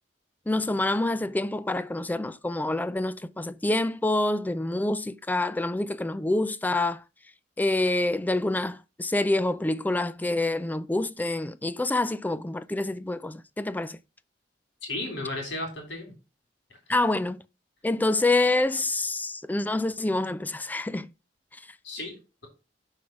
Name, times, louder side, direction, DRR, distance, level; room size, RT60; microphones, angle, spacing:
voice 1, 0.5-7.0 7.6-14.0 16.9-17.4 17.8-21.1 21.5-21.6, left 2 dB, 10° left, 0.3 m, -27 dB
voice 2, 14.8-16.1 21.8-22.2, left 2 dB, 85° left, 3.4 m, -34 dB
6.1 x 4.9 x 5.9 m
head